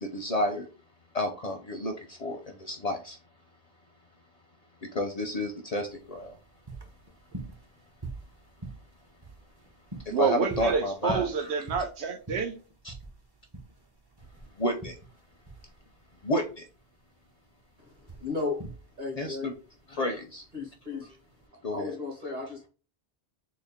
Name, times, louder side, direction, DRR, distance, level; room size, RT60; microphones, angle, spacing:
voice 1, 0.1-0.7 1.1-1.9 2.2-3.2 4.9-6.3 10.2-11.5 12.8-12.9 14.6-14.9 16.2-16.6 19.2-19.5 19.9-20.4 21.6-21.9, left 1 dB, 50° left, 0.5 m, -30 dB
sound 1, 5.8-21.5, right 2 dB, 30° right, 0.6 m, -44 dB
voice 2, 10.1-12.6, right 5 dB, 90° right, 0.9 m, -28 dB
voice 3, 17.8-18.6 19.0-19.5 20.5-21.2 21.7-22.7, left 3 dB, 45° right, 1.5 m, -35 dB
3.9 x 2.1 x 3.4 m
omnidirectional pair, 1.1 m